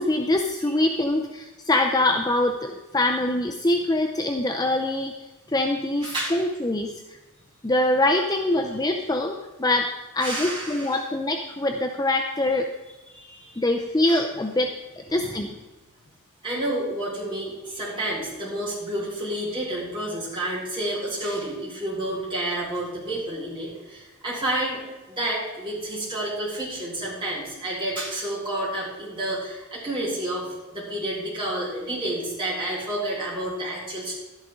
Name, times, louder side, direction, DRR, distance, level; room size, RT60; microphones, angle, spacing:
voice 1, 0.0-5.2 5.5-7.0 7.6-12.7 13.6-15.5, left 1 dB, 15° left, 3 dB, 0.5 m, -24 dB
voice 2, 0.6-1.0 6.0-6.5 8.7-8.8 10.2-11.0 13.1-13.7 14.1-14.2 15.1-15.4 16.4-24.8 25.1-34.2, right 1 dB, 20° right, -7 dB, 4.5 m, -30 dB
12.0 x 10.5 x 3.7 m, 1.1 s
head